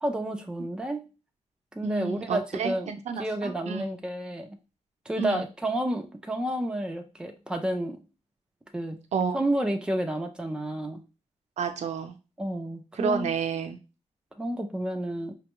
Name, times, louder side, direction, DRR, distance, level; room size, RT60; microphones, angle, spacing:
voice 1, 0.0-1.1 1.7-2.9 3.2-4.6 5.1-8.0 8.7-9.0 9.3-11.0 12.4-13.3 14.4-15.3, right 1 dB, 5° right, 4 dB, 0.5 m, -30 dB
voice 2, 1.8-3.9 5.2-5.4 9.1-9.4 11.6-12.2 13.0-13.8, right 6 dB, 75° right, 6 dB, 0.6 m, -30 dB
5.2 x 2.2 x 2.9 m, 0.30 s
wide cardioid pair, 165°, 12 cm